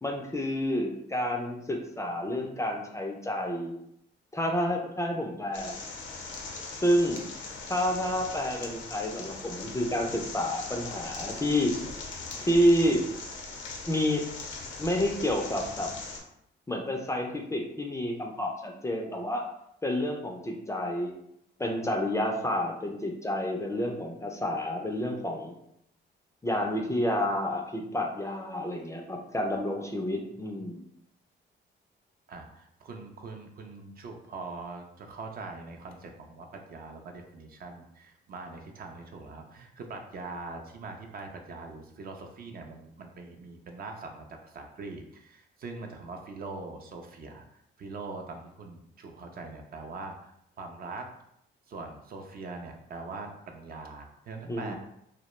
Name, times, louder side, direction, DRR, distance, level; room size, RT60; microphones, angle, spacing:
voice 1, 0.0-3.8 4.3-5.8 6.8-7.2 7.7-11.7 12.5-13.0 13.9-14.2 14.8-15.9 16.7-19.4 19.8-21.1 21.6-25.6 26.4-30.8 54.5-54.7, left 1 dB, 15° left, 2 dB, 0.3 m, -29 dB
sound 1, 5.5-16.2, left 4 dB, 70° left, 0.6 m, -40 dB
voice 2, 32.3-51.1 51.7-54.8, right 3 dB, 50° right, 3 dB, 0.4 m, -42 dB
2.2 x 2.0 x 2.9 m, 0.75 s
cardioid pair, 90°, 20 cm